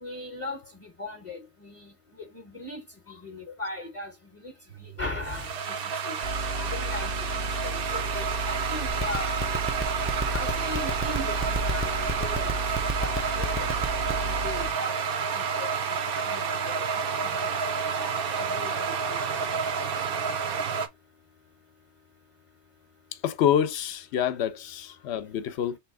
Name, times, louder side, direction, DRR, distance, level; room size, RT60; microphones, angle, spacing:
voice 1, 0.0-4.5 4.8-5.7 6.0-6.2 6.6-7.1 7.4-9.5 10.3-12.6 13.0-13.6 13.9-15.0 15.3-17.5 18.0-19.8, left 2 dB, 30° left, 0.9 m, -39 dB
sound 1, 4.7-20.9, right 6 dB, 60° right, 0.8 m, -30 dB
sound 2, 6.2-14.7, right 1 dB, 85° right, 1.3 m, -33 dB
sound 3, 8.9-14.3, right 2 dB, 15° right, 0.5 m, -28 dB
voice 2, 23.2-25.8, left 9 dB, 70° left, 0.9 m, -27 dB
3.3 x 3.2 x 4.7 m
omnidirectional pair, 1.2 m